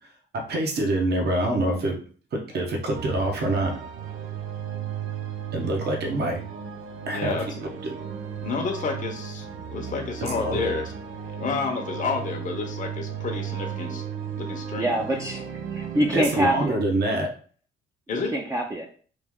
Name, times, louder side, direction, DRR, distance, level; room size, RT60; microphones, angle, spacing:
voice 1, 0.0-2.0 2.3-3.8 5.5-6.4 7.1-7.4 10.2-10.7 16.1-17.3, right 1 dB, 55° right, 1 dB, 1.0 m, -26 dB
sound 1, 2.9-16.7, right 8 dB, 90° right, 0.5 m, -35 dB
voice 2, 7.1-7.6 8.4-9.5 9.7-10.9 11.4-14.0 14.4-15.0 18.1-18.4, left 4 dB, 40° left, 2 dB, 0.7 m, -30 dB
voice 3, 14.8-15.5 15.7-16.8 18.3-18.9, right 1 dB, 15° right, 1 dB, 0.5 m, -25 dB
3.2 x 2.6 x 3.6 m, 0.43 s
cardioid pair, 90°, 20 cm